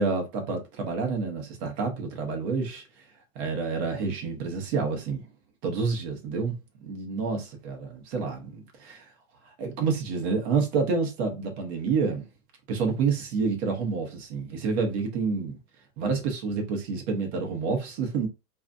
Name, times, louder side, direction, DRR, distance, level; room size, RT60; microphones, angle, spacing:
voice 1, 0.0-2.8 3.3-5.3 5.6-6.5 6.8-9.1 9.6-12.3 12.7-15.6 16.0-18.3, right 4 dB, 40° right, 1.0 m, -28 dB
2.7 x 2.4 x 3.3 m
hypercardioid pair, 150°, 47 cm